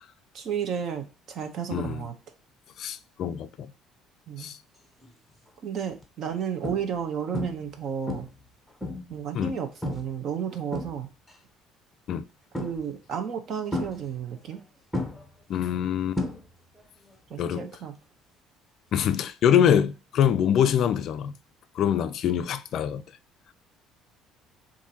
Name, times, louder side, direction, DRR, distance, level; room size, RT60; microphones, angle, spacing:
voice 1, 0.3-2.1 4.3-4.5 5.6-8.3 9.1-11.1 12.6-14.6 17.3-17.9, right 8 dB, 45° right, 0.9 m, -32 dB
voice 2, 1.7-2.0 2.8-3.7 4.4-4.6 9.3-9.6 12.1-12.2 15.5-16.2 17.4-17.7 18.9-21.3 21.8-23.0, left 9 dB, 50° left, 0.4 m, -24 dB
sound 1, 5.0-5.3 5.9-6.0 6.6-7.1 7.3-7.8 8.1-9.2 9.8-10.2 10.5-11.4 12.5-13.1 13.7-14.6 14.9-16.8 17.1-17.5 19.6-19.7, left 2 dB, ahead, 0.8 m, -33 dB
7.1 x 2.6 x 2.8 m
cardioid pair, 155°, 0 cm